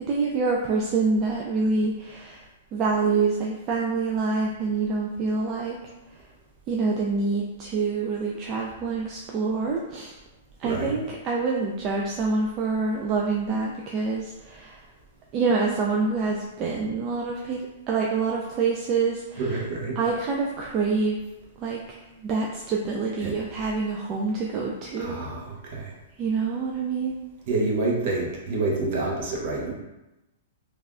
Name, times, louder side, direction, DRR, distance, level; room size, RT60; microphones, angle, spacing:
voice 1, 0.1-2.4 2.7-5.8 6.7-10.2 10.6-14.8 15.3-19.6 20.0-21.2 21.6-21.8 22.2-25.2 26.2-27.2, right 4 dB, 30° right, -2 dB, 0.3 m, -26 dB
voice 2, 10.6-10.9 19.4-20.0 23.2-23.4 25.0-25.9 27.5-29.7, right 2 dB, 55° right, -2 dB, 0.8 m, -28 dB
3.2 x 2.3 x 2.4 m, 1.0 s
hypercardioid pair, 135°, 0 cm